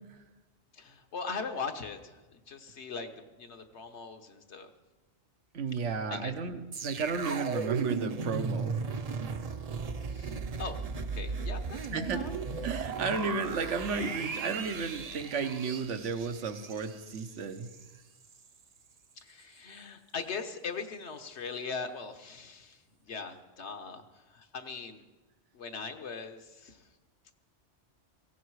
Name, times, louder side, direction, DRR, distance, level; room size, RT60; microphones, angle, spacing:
voice 1, 0.7-4.7 5.8-6.3 10.1-12.3 19.2-25.0 25.5-26.9, left 4 dB, 70° left, 7 dB, 1.4 m, -40 dB
voice 2, 5.5-8.8 11.8-12.2 12.6-17.7, right 5 dB, 85° right, 9 dB, 1.3 m, -33 dB
sound 1, 6.7-17.9 18.2-18.4, right 5 dB, 40° right, 0.6 m, -36 dB
17.0 x 16.0 x 4.8 m, 1.2 s
omnidirectional pair, 1.2 m